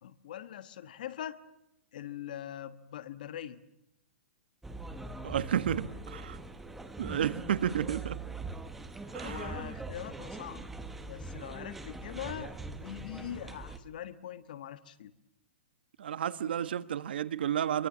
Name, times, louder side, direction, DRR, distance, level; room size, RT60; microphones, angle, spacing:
voice 1, 0.0-1.4 1.9-3.6 9.2-10.7 11.0-15.1, left 10 dB, 45° left, 13 dB, 1.4 m, -42 dB
sound 1, 4.6-13.8, right 2 dB, 5° right, 0.9 m, -42 dB
voice 2, 5.2-6.4 7.0-8.2 9.1-9.6 16.0-17.9, right 9 dB, 55° right, 14 dB, 1.3 m, -32 dB
26.0 x 23.0 x 7.4 m, 0.87 s
hypercardioid pair, 180°, 6 cm